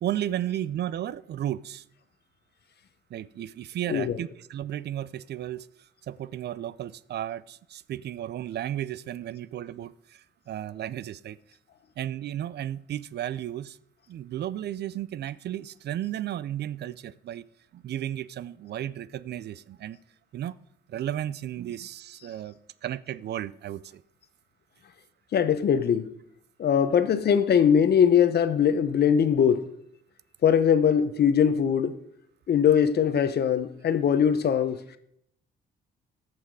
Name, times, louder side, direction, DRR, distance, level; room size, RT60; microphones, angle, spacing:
voice 1, 0.0-1.8 3.1-5.7 6.1-11.4 12.0-13.8 14.1-17.4 17.7-20.0 20.3-20.6 20.9-22.5 22.8-24.0, right 11 dB, 55° right, 0.4 m, -34 dB
voice 2, 25.3-26.1 26.6-29.7 30.4-32.0 32.5-34.8, left 8 dB, 55° left, 0.9 m, -21 dB
14.0 x 6.0 x 4.7 m
cardioid pair, 90°, 20 cm